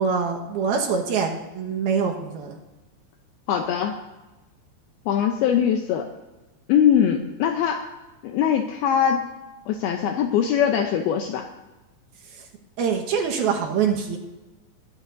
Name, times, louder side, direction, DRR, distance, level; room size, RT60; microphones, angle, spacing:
voice 1, 0.0-2.5 12.8-14.2, right 6 dB, 65° right, 1 dB, 2.8 m, -24 dB
voice 2, 3.5-4.0 5.1-6.1 6.7-7.9 8.2-9.3 9.7-11.5, left 8 dB, 90° left, 5 dB, 2.1 m, -22 dB
23.5 x 11.5 x 2.7 m, 1.1 s
omnidirectional pair, 5.5 m